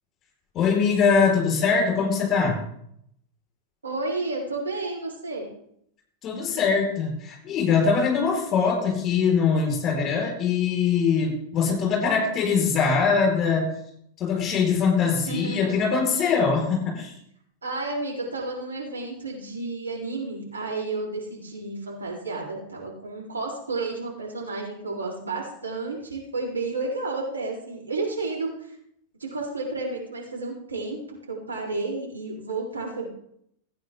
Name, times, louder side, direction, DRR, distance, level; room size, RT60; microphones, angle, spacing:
voice 1, 0.5-2.6 6.2-13.8 14.2-17.1, left 5 dB, 30° left, 0 dB, 5.0 m, -22 dB
voice 2, 3.8-5.5 15.0-15.8 17.6-28.8 29.2-31.0 31.3-33.1, right 3 dB, 80° right, -4 dB, 4.1 m, -31 dB
16.0 x 9.0 x 3.8 m, 0.72 s
figure-of-eight pair, 90°, 0 cm